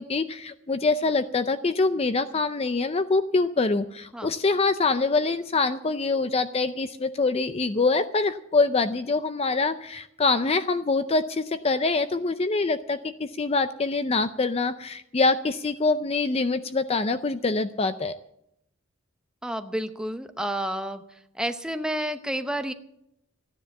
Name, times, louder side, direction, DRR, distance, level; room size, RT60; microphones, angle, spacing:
voice 1, 0.0-18.2, left 3 dB, 30° left, 11 dB, 0.5 m, -25 dB
voice 2, 19.4-21.0 21.4-22.7, right 1 dB, 5° right, 8 dB, 0.8 m, -30 dB
14.5 x 10.0 x 7.2 m, 0.77 s
head